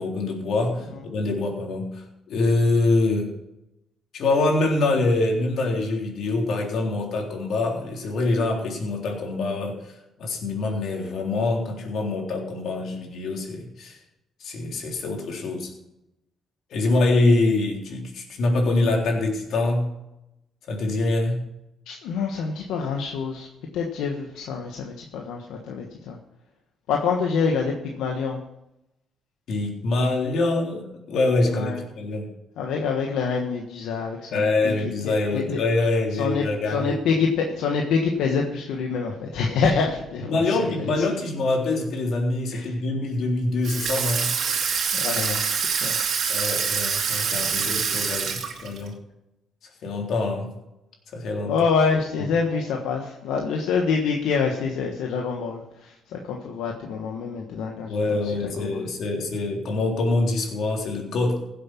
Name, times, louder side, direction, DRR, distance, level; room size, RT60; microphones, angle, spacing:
voice 1, 0.0-3.3 4.1-9.9 10.2-14.0 14.4-15.7 16.7-19.9 20.7-21.4 29.5-32.3 34.3-37.0 40.2-44.3 46.3-48.9 49.8-50.5 51.1-51.5 57.9-61.4, left 2 dB, 70° left, 0 dB, 3.6 m, -25 dB
voice 2, 21.9-23.5 23.7-26.2 26.9-28.4 31.5-31.8 32.6-35.6 36.2-41.0 42.5-42.7 44.9-45.4 45.8-46.0 47.6-47.7 48.3-48.4 51.5-55.9 56.2-58.8, left 5 dB, 90° left, 1 dB, 1.4 m, -26 dB
Water tap faucet / Sink (filling or washing), 43.6-48.9, right 6 dB, 65° right, 2.4 m, -25 dB
16.0 x 7.8 x 6.0 m, 0.89 s
cardioid pair, 90°, 0 cm